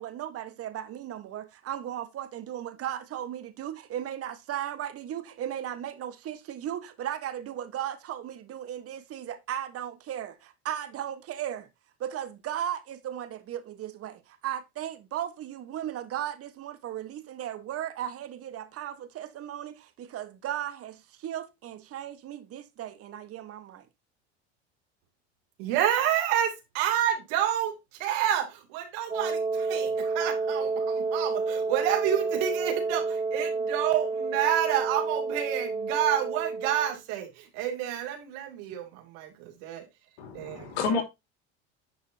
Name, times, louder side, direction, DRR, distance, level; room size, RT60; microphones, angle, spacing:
voice 1, 0.0-11.7 12.0-23.9, right 11 dB, 45° right, 1.3 m, -36 dB
voice 2, 25.6-27.7 28.0-39.9 40.3-41.0, right 10 dB, 70° right, 2.7 m, -29 dB
Wind instrument woodwind instrument, 29.1-37.0, right 4 dB, 15° right, 0.9 m, -30 dB
voice 3, 40.2-41.0, left 5 dB, 85° left, 2.9 m, -29 dB
10.0 x 5.4 x 2.8 m
supercardioid pair, 105°, 33 cm